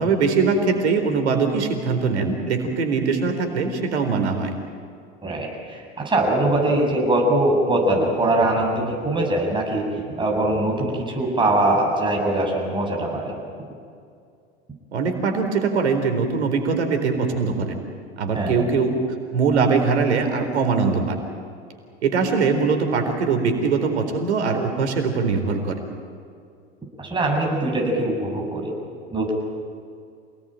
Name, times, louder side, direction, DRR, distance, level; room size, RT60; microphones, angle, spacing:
voice 1, 0.0-4.5 14.9-17.8 18.2-18.9 19.3-21.2 22.0-25.8, right 5 dB, 80° right, 6 dB, 4.2 m, -22 dB
voice 2, 5.2-9.9 10.2-13.3 18.3-18.6 27.0-28.7 29.1-29.3, right 1 dB, 15° right, -1 dB, 7.7 m, -22 dB
28.0 x 19.0 x 9.1 m, 2.4 s
hypercardioid pair, 90°, 33 cm